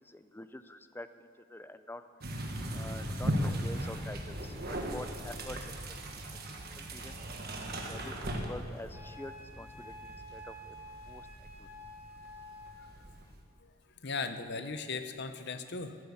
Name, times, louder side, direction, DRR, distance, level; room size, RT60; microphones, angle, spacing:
voice 1, 0.0-2.0 2.7-6.5 6.8-7.2 7.9-10.8 11.1-11.7, left 1 dB, 10° left, 11 dB, 0.4 m, -47 dB
sound 1, 2.2-13.4, right 1 dB, 45° right, 1.6 m, -38 dB
Wind instrument woodwind instrument, 8.9-12.8, equal, 10° right, 1.2 m, -49 dB
voice 2, 14.0-16.0, left 4 dB, 50° left, 9 dB, 0.8 m, -37 dB
14.5 x 12.5 x 7.2 m, 2.5 s
head